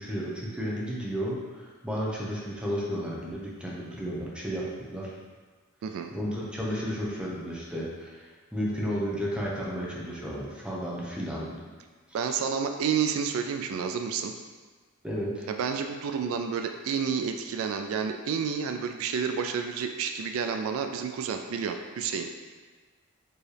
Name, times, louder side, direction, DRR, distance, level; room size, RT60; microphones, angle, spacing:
voice 1, 0.0-4.6 4.9-5.1 6.1-11.5 12.1-12.2 15.0-15.5, equal, 5° right, -5 dB, 0.7 m, -33 dB
voice 2, 12.1-14.3 15.5-22.3, right 6 dB, 75° right, 6 dB, 0.3 m, -30 dB
4.5 x 3.0 x 3.3 m, 1.4 s
head